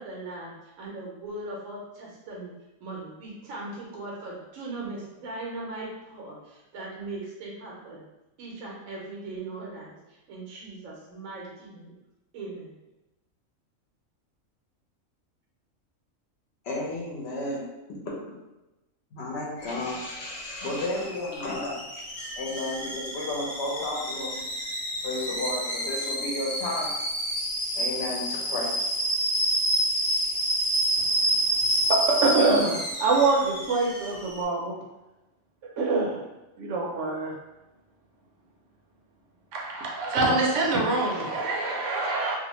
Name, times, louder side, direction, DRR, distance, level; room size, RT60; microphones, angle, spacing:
voice 1, 0.0-2.5 2.8-8.0 8.4-10.0 10.3-11.9 12.3-12.7, right 2 dB, 90° right, -3 dB, 1.1 m, -39 dB
voice 2, 16.6-17.6 19.1-21.8 22.4-24.4 25.0-26.9 27.7-28.7, left 2 dB, 60° left, -3 dB, 0.9 m, -32 dB
Alarm / Boiling, 19.6-34.4, equal, 30° left, 0.8 m, -29 dB
voice 3, 33.0-33.4 33.7-33.8 34.4-34.5 35.9-36.0 40.1-41.0 41.9-42.2, right 3 dB, 70° right, -2 dB, 0.9 m, -21 dB
2.6 x 2.1 x 2.9 m, 1.0 s
omnidirectional pair, 1.4 m